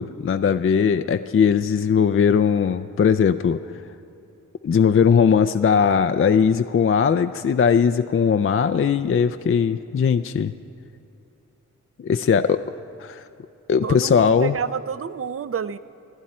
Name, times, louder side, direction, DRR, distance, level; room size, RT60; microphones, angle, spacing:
voice 1, 0.0-3.6 4.6-10.5 12.0-12.6 13.0-13.2 13.7-14.5, left 6 dB, 40° left, 10 dB, 0.4 m, -19 dB
voice 2, 13.8-15.8, right 7 dB, 45° right, 14 dB, 0.6 m, -28 dB
27.5 x 10.5 x 4.3 m, 2.9 s
wide cardioid pair, 75°, 32 cm